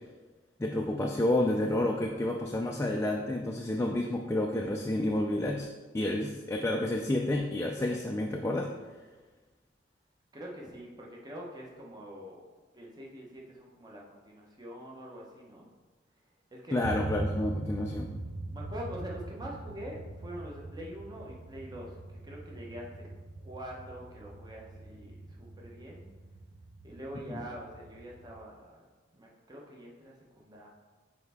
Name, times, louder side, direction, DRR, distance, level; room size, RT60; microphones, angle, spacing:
voice 1, 0.6-5.7 5.9-8.7 16.7-18.1 27.2-27.4, left 1 dB, 15° left, 1 dB, 0.3 m, -30 dB
voice 2, 10.3-12.4 12.7-15.7 16.5-16.8 18.5-23.1 23.4-26.0 26.8-30.7, equal, 20° right, -2 dB, 0.9 m, -45 dB
sound 1, 16.8-28.4, right 2 dB, 90° right, 0.7 m, -41 dB
6.5 x 4.3 x 3.5 m, 1.3 s
head